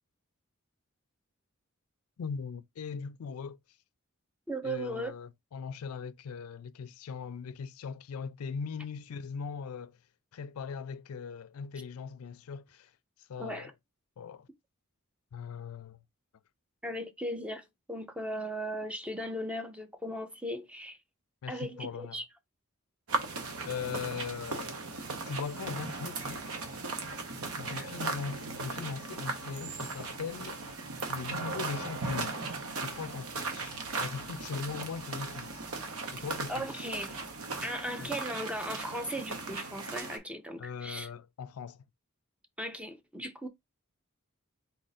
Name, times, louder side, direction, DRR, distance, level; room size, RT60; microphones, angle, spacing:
voice 1, 2.2-3.6 4.6-9.9 10.3-12.9 13.2-13.7 14.2-14.5 15.3-16.0 21.4-22.2 23.6-24.8 25.3-26.6 27.6-30.6 31.1-32.4 32.8-35.6 36.1-36.8 38.0-38.1 40.6-41.8, left 6 dB, 85° left, 0.4 m, -40 dB
voice 2, 4.5-5.1 13.4-13.7 16.8-21.0 21.5-22.2 27.7-27.9 36.5-37.2 37.6-41.1 42.6-43.5, equal, 5° right, 0.6 m, -37 dB
sound 1, 23.1-40.2, right 3 dB, 85° right, 1.1 m, -37 dB
4.1 x 2.5 x 4.1 m
head